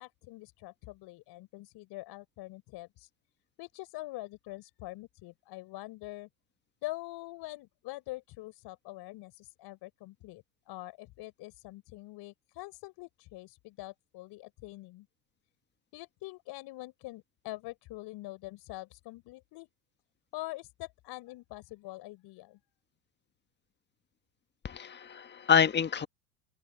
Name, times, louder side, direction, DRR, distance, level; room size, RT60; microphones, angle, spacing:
voice 1, 0.0-3.1 3.6-6.3 6.8-15.1 15.9-19.7 20.3-22.6, left 19 dB, 50° left, 4.8 m, -44 dB
voice 2, 24.6-26.1, left 7 dB, 20° left, 1.5 m, -27 dB
open air
hypercardioid pair, 80°, 50 cm